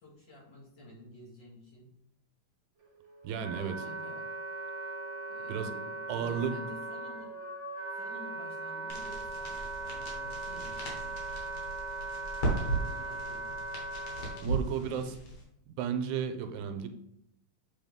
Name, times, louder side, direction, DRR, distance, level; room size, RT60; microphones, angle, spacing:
voice 1, 0.0-1.9 3.6-4.2 5.3-7.4 7.9-11.2 12.5-13.7 14.7-15.3 16.4-16.7, left 1 dB, 45° left, -6 dB, 2.3 m, -52 dB
Wind instrument woodwind instrument, 2.8-14.4, right 2 dB, 50° right, 0.8 m, -39 dB
voice 2, 3.2-3.8 5.5-5.7 6.1-6.6 14.4-15.1 15.7-16.9, right 7 dB, 80° right, 7 dB, 2.0 m, -33 dB
sound 1, 8.9-15.4, right 2 dB, 70° left, 2.9 m, -37 dB
7.6 x 3.9 x 3.6 m, 0.76 s
omnidirectional pair, 3.4 m